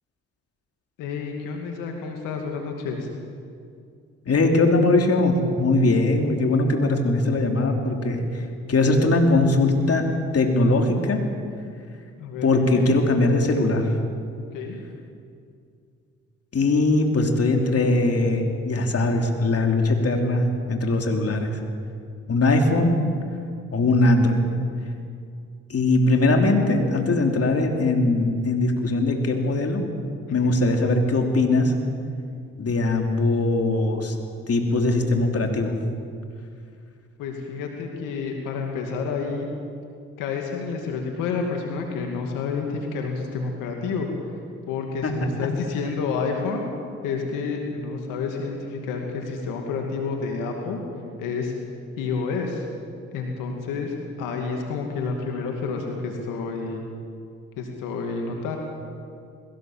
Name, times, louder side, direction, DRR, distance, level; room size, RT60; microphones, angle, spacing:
voice 1, 1.0-3.1 12.2-12.9 14.5-14.8 30.3-30.6 37.2-39.5 40.2-44.1 44.7-46.7 47.0-50.8 51.2-51.5 52.0-52.7 53.1-56.8 57.6-58.6, left 4 dB, 90° left, 2 dB, 2.4 m, -29 dB
voice 2, 4.2-8.4 8.7-11.2 12.4-13.9 16.5-21.6 22.3-22.9 23.7-24.4 25.7-29.9 30.3-31.7 32.6-34.1 34.5-35.7 45.0-45.1, left 2 dB, 50° left, 3 dB, 3.3 m, -21 dB
21.0 x 17.5 x 7.4 m, 2.3 s
supercardioid pair, 60°, 31 cm